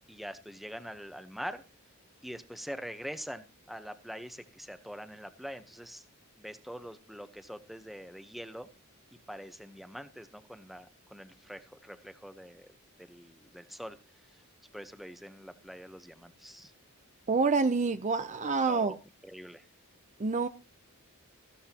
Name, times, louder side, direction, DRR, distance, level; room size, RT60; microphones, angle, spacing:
voice 1, 0.1-1.6 2.2-6.0 6.4-8.7 9.3-12.7 13.0-14.0 14.3-14.4 14.7-16.7 18.4-19.0 19.2-19.7, equal, ahead, 0.9 m, -44 dB
voice 2, 17.3-19.0 20.2-20.5, right 4 dB, 35° right, 0.6 m, -27 dB
15.5 x 13.0 x 2.9 m
head